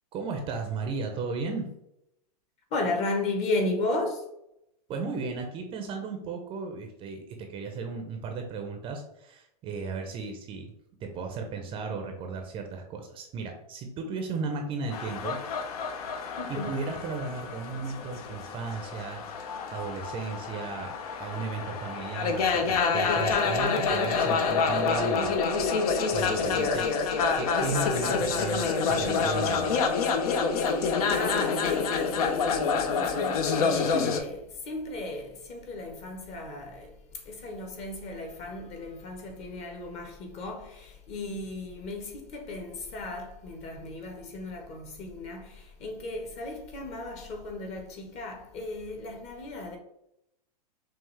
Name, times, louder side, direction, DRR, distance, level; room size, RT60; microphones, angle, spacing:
voice 1, 0.1-1.7 4.9-10.7 11.0-15.4 16.5-25.3 26.1-29.7, right 4 dB, 25° right, 0.6 m, -35 dB
voice 2, 2.7-4.2 16.4-16.8 30.6-49.8, left 2 dB, 30° left, 1.0 m, -35 dB
sound 1, 14.9-34.2, left 5 dB, 65° left, 0.7 m, -27 dB
5.7 x 2.4 x 3.2 m
hypercardioid pair, 135°, 20 cm